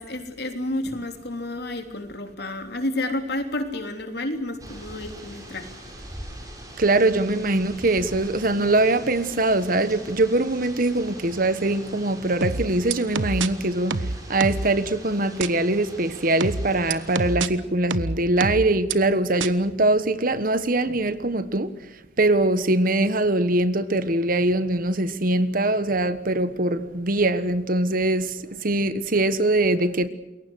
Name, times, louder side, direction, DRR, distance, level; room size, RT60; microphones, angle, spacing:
voice 1, 0.0-5.7, left 1 dB, 55° left, 3.4 m, -30 dB
sound 1, 4.6-17.4, right 1 dB, 20° right, 6.4 m, -42 dB
voice 2, 6.8-13.9 14.3-21.7 22.2-28.3 28.6-30.1, right 2 dB, 45° right, 1.3 m, -22 dB
sound 2, 12.4-13.5 13.9-14.7 15.4-15.5 16.4-17.5 17.9-18.9 19.4-19.5, right 3 dB, 85° right, 1.2 m, -26 dB
28.5 x 22.0 x 6.4 m
head